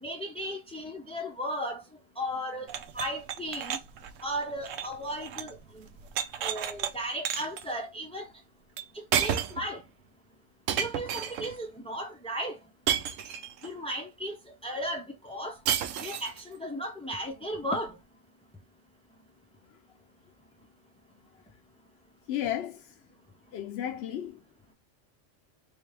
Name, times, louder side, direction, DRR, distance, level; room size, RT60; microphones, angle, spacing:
voice 1, 0.0-1.8 2.2-3.8 4.2-5.8 6.4-8.3 8.9-9.8 10.8-12.6 13.6-15.6 16.0-18.0, equal, 10° left, 0.3 m, -35 dB
sound 1, 2.7-5.6 5.9-6.9 7.3-7.6 8.8-8.9 9.1-9.7 10.7-11.5 12.9-13.7 15.7-16.4, right 9 dB, 90° right, 1.0 m, -31 dB
voice 2, 22.3-23.0 23.5-24.4, left 11 dB, 65° left, 0.7 m, -33 dB
3.8 x 3.1 x 3.3 m
omnidirectional pair, 1.3 m